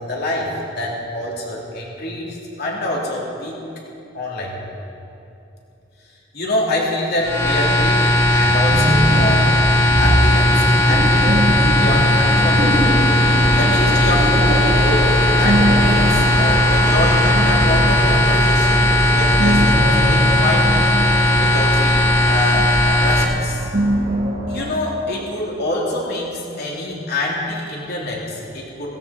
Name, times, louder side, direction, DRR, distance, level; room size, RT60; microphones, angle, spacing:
voice 1, 0.0-3.5 4.1-4.6 6.3-9.6 10.0-13.1 13.6-19.6 19.9-20.9 21.3-23.7 24.5-29.0, left 1 dB, 55° left, -3 dB, 3.2 m, -26 dB
sound 1, 7.2-23.2, left 1 dB, 15° left, 1.5 m, -16 dB
sound 2, 8.4-24.8, right 1 dB, 50° right, 1.4 m, -23 dB
sound 3, 12.4-20.5, right 1 dB, 35° right, 0.9 m, -28 dB
17.5 x 15.5 x 4.2 m, 2.8 s
head